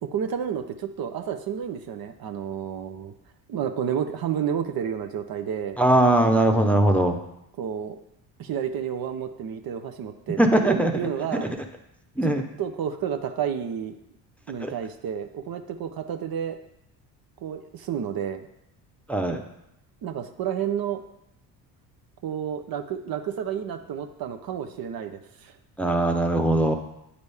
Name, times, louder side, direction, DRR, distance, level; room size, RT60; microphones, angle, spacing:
voice 1, 0.0-3.1 3.5-5.8 7.6-8.0 8.4-11.5 12.2-13.9 14.5-16.6 17.4-18.5 20.0-21.0 22.2-25.5, right 8 dB, 50° right, 6 dB, 0.8 m, -30 dB
voice 2, 5.8-7.2 10.4-10.9 12.2-12.4 14.6-14.7 19.1-19.4 25.8-26.8, right 1 dB, 5° left, 3 dB, 0.8 m, -20 dB
9.6 x 4.0 x 3.5 m, 0.82 s
hypercardioid pair, 65°, 48 cm